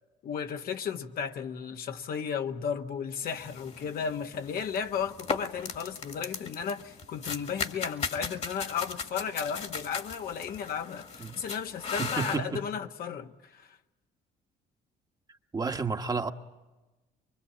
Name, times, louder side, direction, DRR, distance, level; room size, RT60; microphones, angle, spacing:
voice 1, 0.2-13.8, left 7 dB, 60° left, 1.4 m, -34 dB
sound 1, 3.2-12.4, left 5 dB, 40° left, 2.0 m, -38 dB
voice 2, 12.0-12.6 15.5-16.3, right 4 dB, 25° right, 1.2 m, -31 dB
24.5 x 24.0 x 8.6 m
cardioid pair, 110°, 17 cm